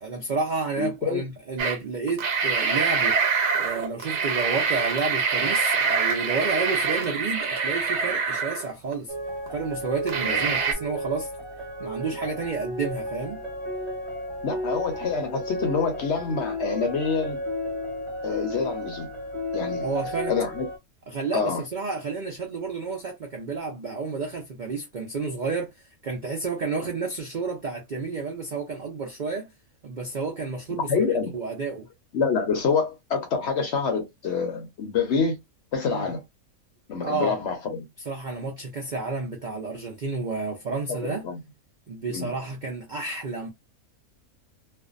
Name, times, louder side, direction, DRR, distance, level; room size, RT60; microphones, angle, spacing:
voice 1, 0.0-3.2 3.6-9.1 9.5-11.3 11.8-13.4 19.8-20.3 21.1-25.7 26.0-29.5 29.8-31.0 31.3-31.9 35.9-36.1 37.0-37.4 38.1-41.2 41.9-43.5, right 4 dB, 80° right, 0.4 m, -30 dB
voice 2, 0.8-1.2 10.2-10.5 14.4-17.4 18.2-19.1 19.5-20.6 21.3-21.6 30.7-31.3 32.1-35.4 35.7-36.2 36.9-37.8 41.0-41.4 42.1-42.3, left 5 dB, 60° left, 0.8 m, -27 dB
sound 1, 1.6-1.8 2.1-8.9 9.5-9.6 10.1-10.7, right 5 dB, 60° right, 0.8 m, -25 dB
sound 2, 9.1-20.8, left 1 dB, 25° right, 0.8 m, -33 dB
2.5 x 2.1 x 2.4 m
omnidirectional pair, 1.6 m